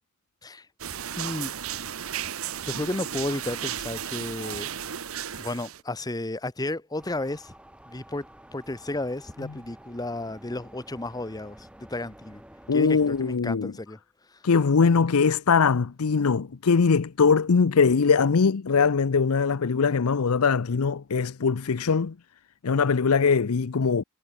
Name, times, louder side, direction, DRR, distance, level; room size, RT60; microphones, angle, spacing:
sound 1, 0.8-5.8, right 9 dB, 75° right, 1.0 m, -34 dB
voice 1, 1.2-1.5 2.7-4.7 5.4-7.5 7.9-8.3 8.5-12.4 12.7-14.0 14.3-14.4, left 2 dB, 15° left, 0.9 m, -33 dB
sound 2, 7.0-13.4, right 1 dB, 5° right, 2.4 m, -50 dB
voice 2, 12.7-13.7 14.4-22.1 22.6-24.0, left 5 dB, 90° left, 0.6 m, -21 dB
head